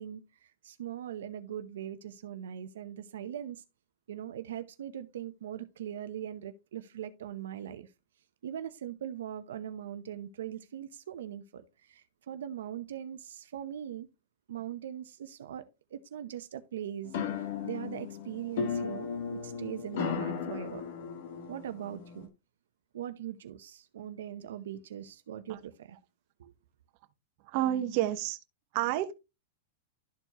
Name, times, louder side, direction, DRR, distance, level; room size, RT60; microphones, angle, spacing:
voice 1, 0.0-3.6 4.1-7.9 8.4-14.1 14.5-15.7 15.9-20.9 21.5-22.3 22.9-26.0 26.4-26.5, right 10 dB, 85° right, 0.8 m, -41 dB
sound 1, 17.0-22.3, left 6 dB, 60° left, 1.5 m, -36 dB
voice 2, 27.4-28.4 28.7-29.1, right 13 dB, 45° right, 1.0 m, -29 dB
12.5 x 4.6 x 2.9 m
supercardioid pair, 155°, 0 cm